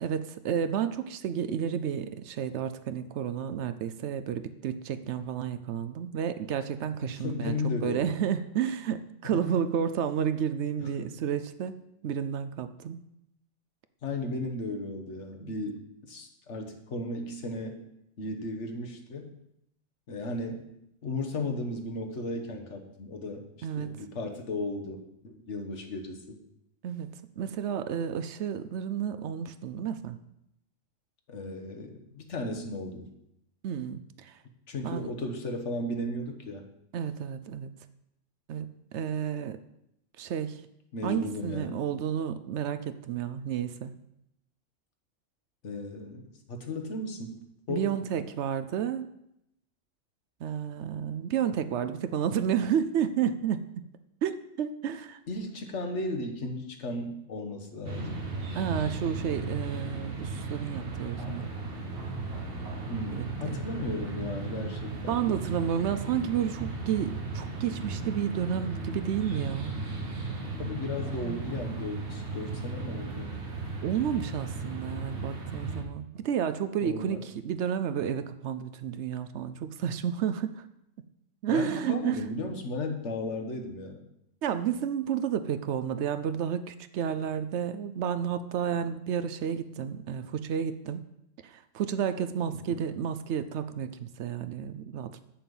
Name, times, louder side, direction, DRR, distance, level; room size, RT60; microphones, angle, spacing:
voice 1, 0.0-13.1 15.4-15.6 23.6-23.9 26.8-30.2 33.6-34.4 34.8-35.1 36.9-37.7 38.5-39.6 40.2-40.6 41.0-43.9 47.7-49.1 50.4-53.9 54.2-55.2 58.5-61.5 63.1-63.6 65.1-69.7 71.2-71.4 73.8-80.6 81.4-82.2 84.4-91.1 91.4-95.2, right 8 dB, 70° right, 11 dB, 0.8 m, -31 dB
voice 2, 7.0-8.2 10.8-11.1 14.0-15.8 16.1-17.8 18.2-19.3 20.1-20.6 21.0-26.4 31.3-33.1 34.7-36.6 40.9-41.8 45.6-46.2 46.5-47.3 47.7-47.9 55.3-58.2 62.9-65.2 70.6-73.3 76.8-77.2 81.5-84.0 92.7-92.8, left 2 dB, 70° left, 3 dB, 1.5 m, -35 dB
sound 1, 57.8-75.8, right 3 dB, 50° right, 1.5 m, -36 dB
7.4 x 6.8 x 5.4 m, 0.81 s
omnidirectional pair, 1.3 m